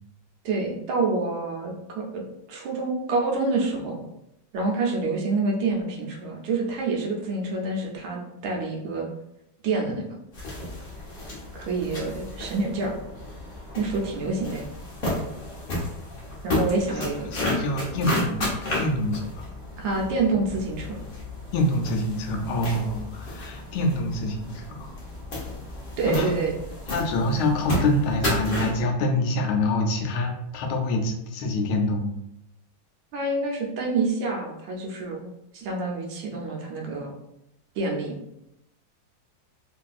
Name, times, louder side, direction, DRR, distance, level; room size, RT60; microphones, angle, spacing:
voice 1, 0.4-2.2 2.5-4.0 4.5-9.1 9.6-10.0 11.5-12.9 13.8-14.6 16.4-17.3 19.8-21.0 26.0-26.6 33.1-35.3 35.5-37.1 37.8-38.1, right 3 dB, 80° right, 0 dB, 1.5 m, -27 dB
sound 1, 10.3-28.8, left 1 dB, 70° left, 0.5 m, -32 dB
voice 2, 17.3-18.5 18.8-19.5 21.5-24.9 26.1-26.3 26.9-32.1, left 1 dB, 90° left, 3 dB, 1.5 m, -26 dB
3.6 x 2.6 x 2.3 m, 0.83 s
omnidirectional pair, 2.2 m